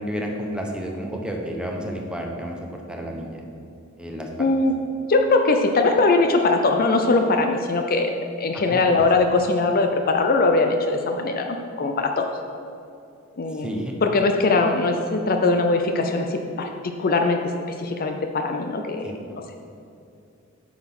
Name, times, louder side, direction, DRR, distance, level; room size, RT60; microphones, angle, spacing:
voice 1, 0.0-3.4 4.0-4.5 8.5-9.1 13.6-13.9 19.0-19.1, equal, 5° right, 0 dB, 0.9 m, -31 dB
voice 2, 4.4-4.7 5.1-8.1 8.4-12.3 13.4-17.5 17.8-19.4, left 3 dB, 45° left, 5 dB, 0.6 m, -21 dB
8.9 x 5.8 x 6.0 m, 2.5 s
head